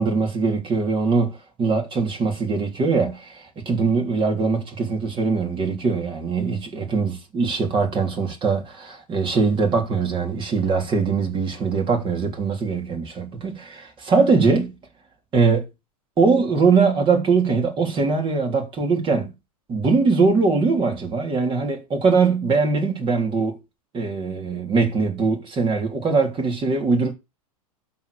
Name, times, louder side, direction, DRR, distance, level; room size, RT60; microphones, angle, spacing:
voice 1, 0.0-14.7 15.3-15.7 16.2-19.3 19.7-23.6 23.9-27.1, right 4 dB, 25° right, 3.4 m, -21 dB
12.5 x 4.5 x 6.6 m
hypercardioid pair, 115°, 19 cm